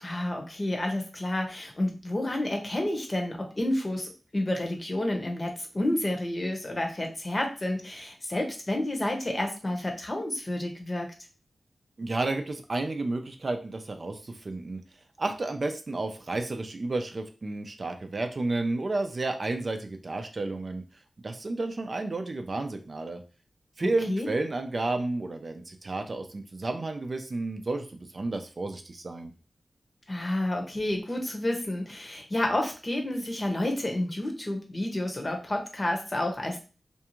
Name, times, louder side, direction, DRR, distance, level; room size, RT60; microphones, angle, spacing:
voice 1, 0.0-11.1 24.1-24.3 30.1-36.6, left 1 dB, 35° left, 2 dB, 0.8 m, -30 dB
voice 2, 12.0-14.8 15.2-20.8 21.2-23.2 23.8-29.3, right 2 dB, 50° right, 5 dB, 0.4 m, -31 dB
2.6 x 2.3 x 2.9 m, 0.35 s
cardioid pair, 55°, 0 cm